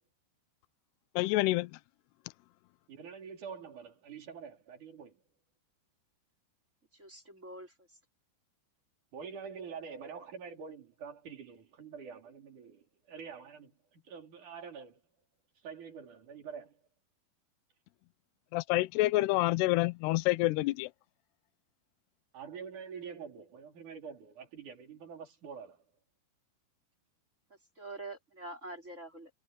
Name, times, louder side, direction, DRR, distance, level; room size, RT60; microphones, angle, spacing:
voice 1, 1.2-1.7 18.5-20.9, left 19 dB, 80° left, 2.7 m, -28 dB
voice 2, 2.9-5.2 9.1-15.0 15.6-16.8 22.3-25.8, right 6 dB, 45° right, 5.0 m, -46 dB
voice 3, 7.0-7.7 27.8-29.3, right 2 dB, 15° right, 4.2 m, -45 dB
omnidirectional pair, 5.1 m